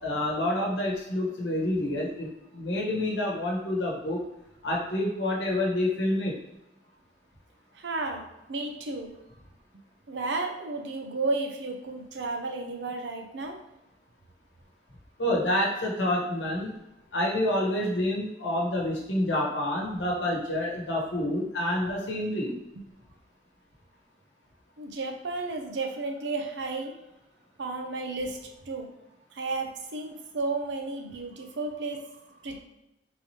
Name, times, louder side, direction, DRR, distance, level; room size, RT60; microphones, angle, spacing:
voice 1, 0.0-4.2 4.6-6.3 15.2-16.7 17.1-22.6, left 1 dB, 90° left, -2 dB, 1.0 m, -28 dB
voice 2, 7.7-9.1 10.1-13.6 24.8-26.9 27.6-28.9 29.3-32.1 32.4-32.6, right 3 dB, 85° right, 4 dB, 0.6 m, -33 dB
3.7 x 3.1 x 2.8 m, 0.90 s
head